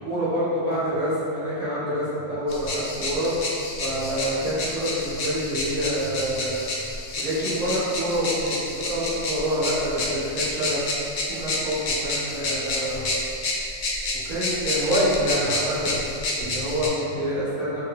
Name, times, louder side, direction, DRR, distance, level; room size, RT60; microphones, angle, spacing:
voice 1, 0.0-3.3 3.8-13.1 14.1-17.8, equal, 50° right, -11 dB, 0.9 m, -27 dB
sound 1, 2.5-16.9, left 2 dB, 60° left, 0.6 m, -29 dB
3.6 x 2.5 x 2.7 m, 2.8 s
omnidirectional pair, 1.2 m